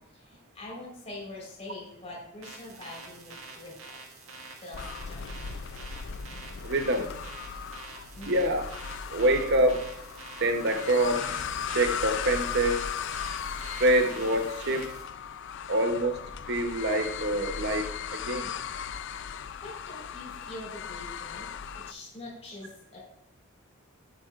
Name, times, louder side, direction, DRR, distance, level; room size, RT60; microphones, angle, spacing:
voice 1, 0.1-3.9 4.6-5.2 8.1-8.4 19.3-21.5 21.9-23.0, left 2 dB, 30° left, -2 dB, 4.0 m, -44 dB
sound 1, 2.4-15.0, right 3 dB, 75° right, 1.8 m, -47 dB
sound 2, 4.7-21.9, left 7 dB, 60° left, 0.4 m, -37 dB
voice 2, 6.6-7.1 8.3-8.7 9.1-9.9 10.4-12.9 13.7-14.9 15.7-18.5, right 1 dB, 55° right, 6 dB, 0.9 m, -26 dB
13.5 x 9.2 x 2.5 m, 0.79 s
head